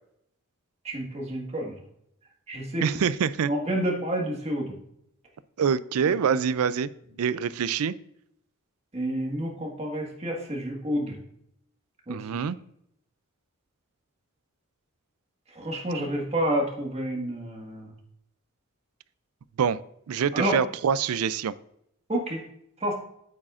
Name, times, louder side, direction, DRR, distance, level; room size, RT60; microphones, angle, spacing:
voice 1, 0.8-1.8 2.5-2.9 3.5-4.7 6.0-6.4 8.9-11.2 12.1-12.5 15.5-17.9 20.3-20.6 22.1-22.4 22.8-22.9, right 1 dB, 30° right, 0 dB, 1.7 m, -29 dB
voice 2, 2.8-3.5 5.6-6.9 7.2-7.9 12.1-12.6 19.6-19.8 20.1-21.5, right 7 dB, 85° right, 18 dB, 0.4 m, -25 dB
8.7 x 8.3 x 2.5 m, 0.74 s
head